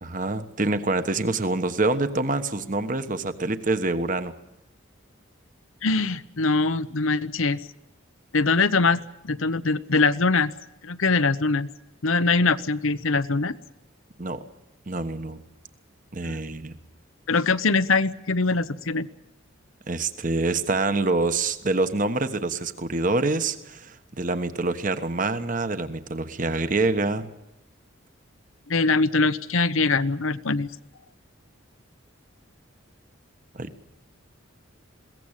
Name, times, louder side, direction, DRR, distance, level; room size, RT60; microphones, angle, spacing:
voice 1, 0.0-4.3 14.2-14.4 14.9-15.4 16.1-16.7 19.9-27.3 33.5-33.7, right 3 dB, 40° right, 10 dB, 1.3 m, -26 dB
voice 2, 5.8-7.6 8.3-10.5 10.8-11.7 12.0-13.5 16.2-16.3 17.3-19.1 28.7-30.7, left 3 dB, 80° left, 14 dB, 0.9 m, -22 dB
21.5 x 17.5 x 9.0 m, 0.88 s
head